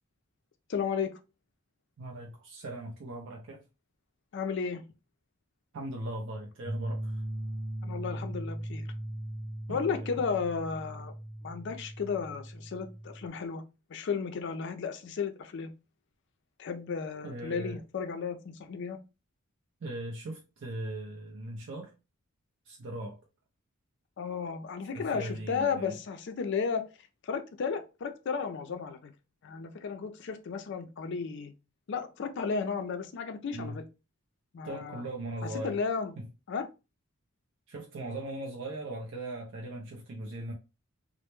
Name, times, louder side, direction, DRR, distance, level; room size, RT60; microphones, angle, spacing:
voice 1, 0.7-1.1 4.3-4.8 7.8-8.9 9.7-11.1 11.4-13.6 13.9-15.7 16.6-19.0 24.2-26.9 27.2-29.1 29.4-31.5 31.9-33.8 34.5-35.0 35.4-36.1 36.5-36.7, left 5 dB, 55° left, 0.4 m, -34 dB
voice 2, 2.0-3.7 5.7-7.2 9.7-10.2 17.2-17.8 19.8-21.9 22.7-23.2 24.9-25.9 33.5-33.8 34.6-35.8 37.7-40.5, right 1 dB, 60° right, 0.4 m, -39 dB
sound 1, 6.6-13.3, right 1 dB, 10° left, 0.8 m, -38 dB
2.1 x 2.0 x 2.9 m
head